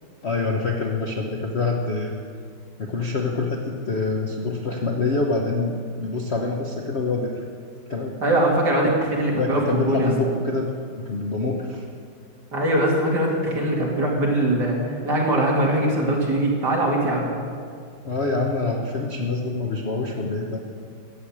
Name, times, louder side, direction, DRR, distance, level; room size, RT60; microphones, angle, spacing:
voice 1, 0.2-2.1 2.8-7.4 7.9-8.3 8.8-8.9 9.3-11.8 18.0-20.6, left 3 dB, 45° left, 0 dB, 0.9 m, -26 dB
voice 2, 8.2-10.1 12.5-14.8 15.0-17.3, right 1 dB, 50° right, -2 dB, 3.0 m, -21 dB
12.5 x 8.0 x 8.6 m, 2.2 s
omnidirectional pair, 2.3 m